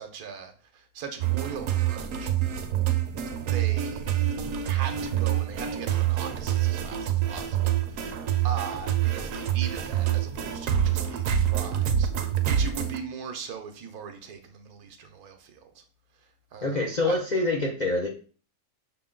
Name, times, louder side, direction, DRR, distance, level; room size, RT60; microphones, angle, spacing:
voice 1, 0.0-2.3 3.4-15.8 16.2-17.2, right 6 dB, 85° right, 1.2 m, -40 dB
sound 1, 1.2-13.0, right 11 dB, 70° right, 0.9 m, -26 dB
voice 2, 16.6-18.1, left 2 dB, 80° left, 0.4 m, -26 dB
5.7 x 2.1 x 3.6 m
omnidirectional pair, 1.5 m